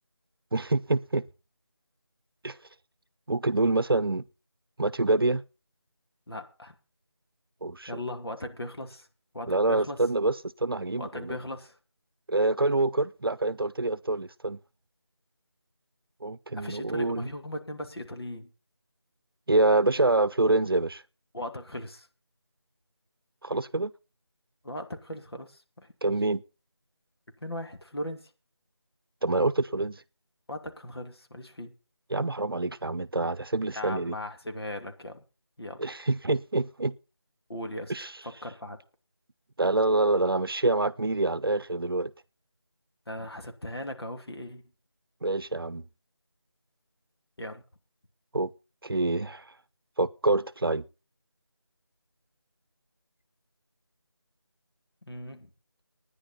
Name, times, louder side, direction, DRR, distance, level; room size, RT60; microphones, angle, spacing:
voice 1, 0.5-1.2 2.4-2.6 3.3-4.2 4.8-5.4 7.6-7.9 9.5-11.4 12.3-14.6 16.2-17.3 19.5-21.0 23.4-23.9 26.0-26.4 29.2-30.0 32.1-34.2 35.8-36.9 37.9-38.1 39.6-42.1 45.2-45.8 48.3-48.5 48.8-49.4 50.0-50.8, right 2 dB, 60° right, 0.8 m, -26 dB
voice 2, 6.3-6.7 7.9-9.1 9.3-10.0 11.0-11.8 16.6-18.5 21.3-22.1 24.6-26.1 27.4-28.3 30.5-31.7 33.7-35.2 35.6-35.9 37.5-37.9 38.2-38.8 43.1-44.6 47.4-47.6 55.0-55.5, left 1 dB, 70° left, 2.7 m, -38 dB
12.0 x 10.0 x 5.5 m
figure-of-eight pair, 165°, 14 cm